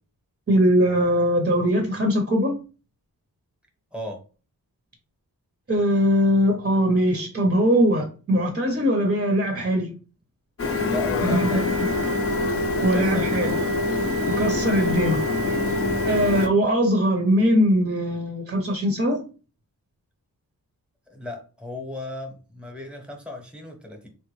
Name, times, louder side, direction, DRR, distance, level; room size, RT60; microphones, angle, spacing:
voice 1, 0.5-2.6 5.7-9.9 11.2-11.6 12.8-13.6 14.3-15.2 16.0-19.2, equal, 30° right, 0.7 m, -21 dB
Printer, 10.6-16.5, left 2 dB, 40° left, 0.6 m, -24 dB
voice 2, 10.9-12.1 12.8-13.7 21.1-24.1, left 1 dB, 5° right, 0.9 m, -36 dB
3.7 x 2.2 x 3.0 m
wide cardioid pair, 95°, 37 cm